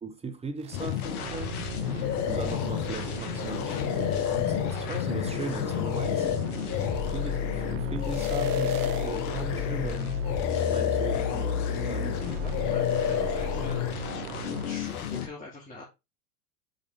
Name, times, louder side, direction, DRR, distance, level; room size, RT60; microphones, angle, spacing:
voice 1, 0.0-1.7 2.3-6.3 7.1-10.4 10.6-12.2, right 4 dB, 15° right, 0.8 m, -38 dB
sound 1, 0.6-15.2, right 15 dB, 70° right, 0.6 m, -40 dB
sound 2, 0.7-15.3, left 9 dB, 65° left, 1.2 m, -32 dB
sound 3, 2.0-3.0 3.4-10.0 10.2-12.2 12.5-13.9, left 10 dB, 40° left, 0.8 m, -31 dB
voice 2, 12.2-13.9 14.6-15.8, left 2 dB, 15° left, 2.3 m, -43 dB
5.4 x 5.0 x 3.7 m
figure-of-eight pair, 85°, 48 cm